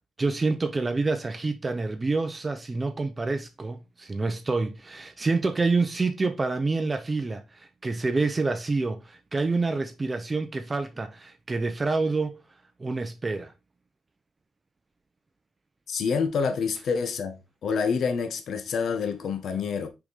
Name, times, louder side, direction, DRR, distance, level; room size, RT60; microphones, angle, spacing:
voice 1, 0.2-12.4 12.8-13.5, right 3 dB, 20° right, 0.7 m, -27 dB
voice 2, 15.9-17.4 17.6-19.9, left 5 dB, 55° left, 1.1 m, -27 dB
6.2 x 4.9 x 4.0 m
cardioid pair, 150°, 0 cm